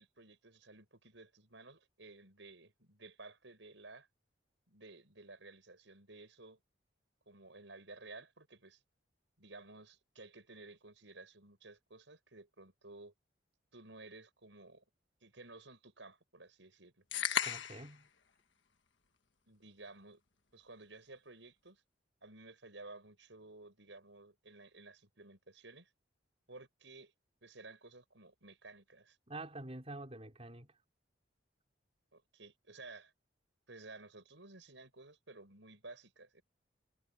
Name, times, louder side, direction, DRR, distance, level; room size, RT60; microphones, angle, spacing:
voice 1, 0.0-4.1 4.7-6.6 7.3-8.8 9.4-13.1 13.7-14.8 15.2-16.9 19.5-20.2 20.5-21.8 22.2-25.9 26.5-27.1 27.4-29.2 32.1-33.1 33.7-36.4, right 3 dB, 75° right, 6.0 m, -54 dB
sound 1, 17.1-17.9, left 8 dB, 75° left, 1.5 m, -34 dB
voice 2, 17.4-18.1 29.3-30.7, right 2 dB, 35° right, 4.5 m, -47 dB
head